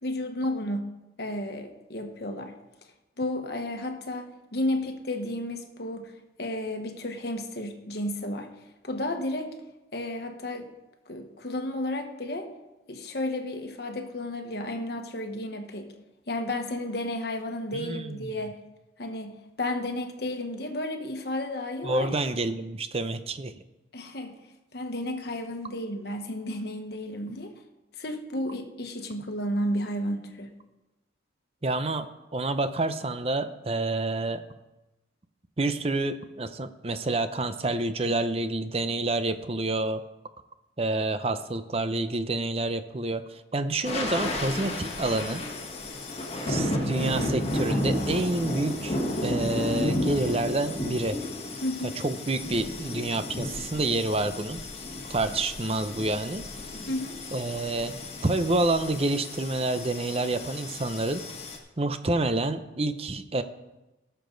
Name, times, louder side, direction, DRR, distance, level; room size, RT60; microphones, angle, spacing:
voice 1, 0.0-0.9 1.2-2.5 3.2-6.1 6.4-8.5 8.8-9.6 9.9-10.7 11.1-12.5 12.9-15.9 16.3-18.6 19.0-22.1 23.9-24.4 24.7-27.5 28.0-30.5 51.6-52.0 56.9-57.2, left 1 dB, 60° left, 5 dB, 1.2 m, -32 dB
voice 2, 17.7-18.3 21.8-23.5 31.6-32.1 32.3-34.4 35.6-40.0 40.8-45.4 46.5-51.2 51.8-54.6 55.1-56.4 57.3-57.9 58.2-61.2 61.8-63.4, right 2 dB, 30° right, 10 dB, 0.6 m, -28 dB
sound 1, 43.8-61.6, left 1 dB, 35° left, 1.5 m, -32 dB
17.0 x 6.9 x 3.9 m, 1.0 s
head